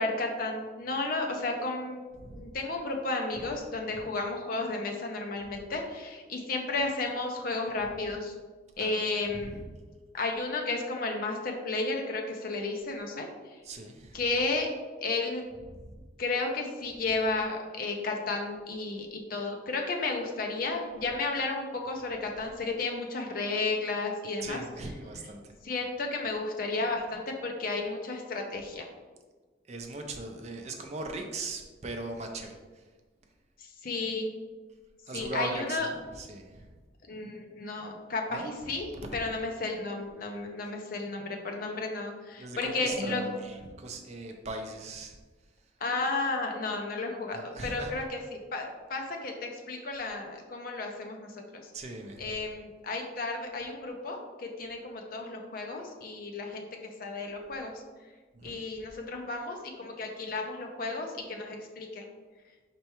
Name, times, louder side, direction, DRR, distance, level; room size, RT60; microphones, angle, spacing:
voice 1, 0.0-2.1 2.4-8.3 8.8-9.6 10.1-13.6 14.1-14.7 15.0-15.5 16.2-24.6 25.6-28.9 33.6-34.3 35.1-35.9 37.1-38.9 39.1-43.2 45.8-51.6 52.2-57.7 58.4-62.1, left 3 dB, 50° left, 2 dB, 0.5 m, -33 dB
voice 2, 2.1-2.5 3.3-3.6 3.9-4.1 8.0-8.1 8.8-9.7 13.6-14.3 15.6-16.0 24.4-25.5 29.7-32.8 35.1-36.7 38.3-39.2 42.4-45.2 47.3-48.0 51.7-52.4 58.3-58.6, right 2 dB, 35° right, 3 dB, 0.5 m, -40 dB
4.4 x 3.4 x 3.0 m, 1.4 s
head